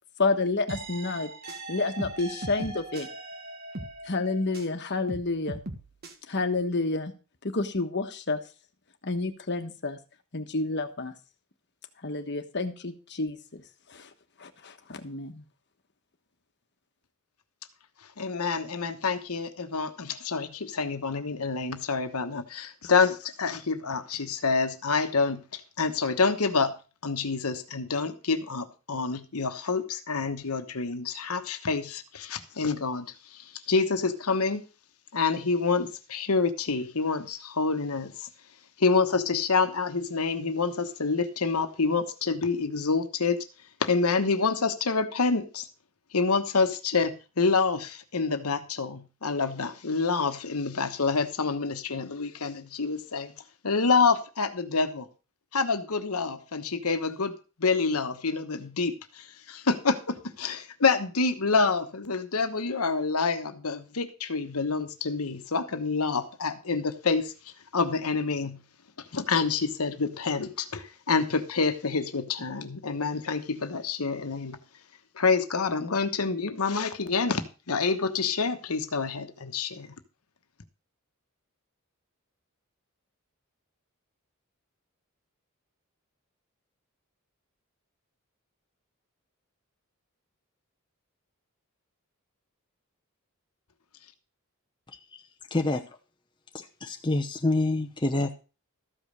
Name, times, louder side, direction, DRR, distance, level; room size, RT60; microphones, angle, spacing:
voice 1, 0.2-1.3 1.7-3.1 4.1-5.6 6.3-7.1 7.4-8.4 9.0-10.0 10.3-11.1 12.0-13.6 13.9-14.1 14.4-15.4, left 3 dB, 50° left, 7 dB, 1.3 m, -29 dB
sound 1, 0.7-4.8 5.1-6.1, right 2 dB, 45° right, 1.6 m, -39 dB
voice 2, 18.2-26.7 27.0-33.1 33.3-34.6 35.1-38.3 38.8-43.4 43.8-45.7 46.1-53.3 53.6-55.1 55.5-57.3 57.6-67.3 67.7-68.6 69.1-74.6 75.2-79.9, left 4 dB, 80° left, 8 dB, 1.1 m, -27 dB
voice 3, 95.5-95.8 96.5-98.3, left 2 dB, 20° left, 4 dB, 0.8 m, -27 dB
13.5 x 5.4 x 6.4 m, 0.34 s
head